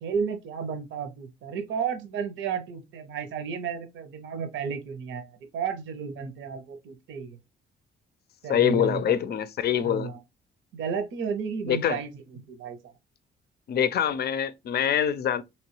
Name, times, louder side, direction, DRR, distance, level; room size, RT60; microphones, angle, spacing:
voice 1, 0.0-7.4 8.4-9.1 9.8-10.2 10.7-13.0, right 6 dB, 75° right, 0.7 m, -33 dB
voice 2, 8.5-10.1 11.7-12.0 13.7-15.4, left 9 dB, 55° left, 0.5 m, -24 dB
3.0 x 3.0 x 3.0 m
cardioid pair, 90°, 20 cm